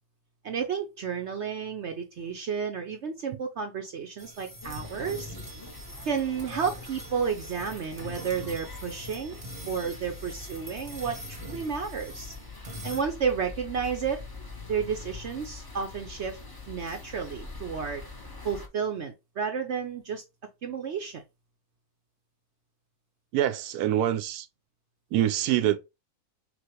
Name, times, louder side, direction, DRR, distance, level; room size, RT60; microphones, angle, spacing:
voice 1, 0.4-5.3 6.0-9.4 9.7-12.3 12.8-14.2 14.7-16.4 16.7-18.0 18.4-20.2 20.6-21.2, right 6 dB, 55° right, 0.9 m, -31 dB
sound 1, 4.2-13.0, equal, 30° right, 0.9 m, -43 dB
sound 2, 4.6-18.7, left 3 dB, 20° left, 0.8 m, -44 dB
voice 2, 23.3-24.5 25.1-25.8, right 11 dB, 85° right, 1.1 m, -25 dB
6.2 x 2.5 x 2.9 m
omnidirectional pair, 1.6 m